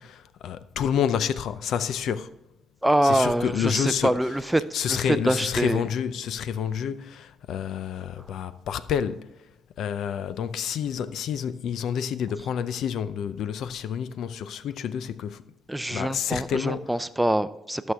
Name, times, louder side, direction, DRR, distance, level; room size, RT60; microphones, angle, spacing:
voice 1, 0.0-2.3 3.0-4.3 4.7-9.3 9.8-15.4 15.9-16.9, left 8 dB, 75° left, 0.5 m, -29 dB
voice 2, 2.8-4.6 4.9-5.8 15.7-17.9, right 1 dB, 5° right, 0.4 m, -24 dB
13.5 x 6.3 x 3.5 m
cardioid pair, 90°, 0 cm